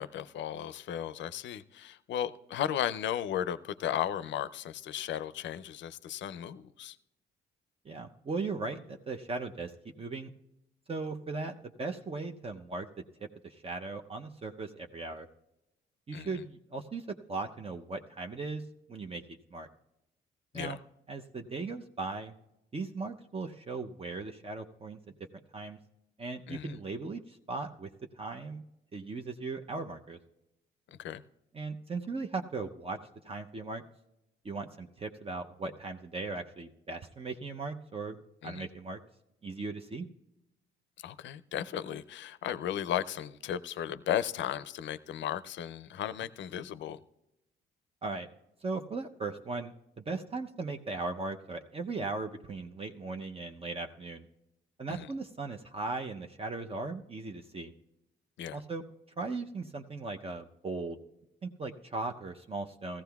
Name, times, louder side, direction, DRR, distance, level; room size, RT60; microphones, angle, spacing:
voice 1, 0.0-7.0 16.1-16.4 20.5-20.8 26.5-26.8 30.9-31.2 38.4-38.7 41.0-47.0 54.9-55.1 58.4-58.6, left 10 dB, 70° left, 0.5 m, -35 dB
voice 2, 7.8-9.7 10.0-10.3 10.9-12.9 13.4-15.3 16.1-18.6 18.9-19.7 20.5-20.8 21.1-22.3 22.7-25.0 25.5-25.8 26.2-27.9 28.2-28.6 28.9-30.2 31.5-33.0 33.2-33.8 34.4-38.2 38.4-39.0 39.4-40.1 48.0-48.3 48.6-54.3 54.8-57.7 58.5-58.8 59.2-61.0 61.4-63.0, right 3 dB, 30° right, 0.6 m, -38 dB
17.0 x 14.5 x 2.3 m
cardioid pair, 90°, 20 cm